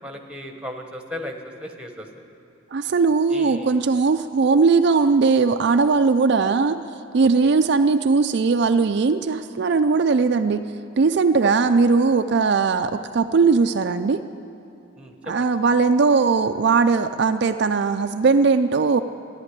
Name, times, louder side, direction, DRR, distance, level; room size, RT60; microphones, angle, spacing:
voice 1, 0.0-2.1 3.3-3.8 7.4-7.5 15.0-15.5, left 1 dB, 5° right, 4 dB, 1.1 m, -36 dB
voice 2, 2.7-6.8 7.1-10.6 11.0-14.2 15.2-19.0, right 4 dB, 55° right, 7 dB, 0.4 m, -19 dB
14.0 x 10.5 x 9.8 m, 2.9 s
head